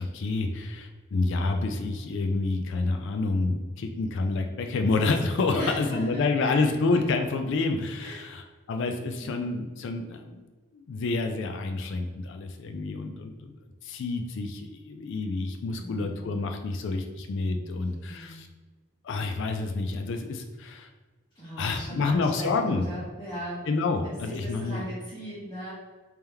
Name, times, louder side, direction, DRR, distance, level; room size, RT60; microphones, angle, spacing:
voice 1, 0.0-10.5 10.7-13.5 13.8-18.5 19.0-20.9 21.6-22.9 23.7-24.9, left 3 dB, 55° left, 5 dB, 0.3 m, -28 dB
voice 2, 5.5-6.6 6.9-7.0 8.0-8.3 9.2-9.5 15.8-16.3 17.8-18.5 21.3-23.7 24.0-25.7, equal, 20° left, -11 dB, 1.1 m, -38 dB
3.5 x 2.9 x 3.3 m, 1.3 s
head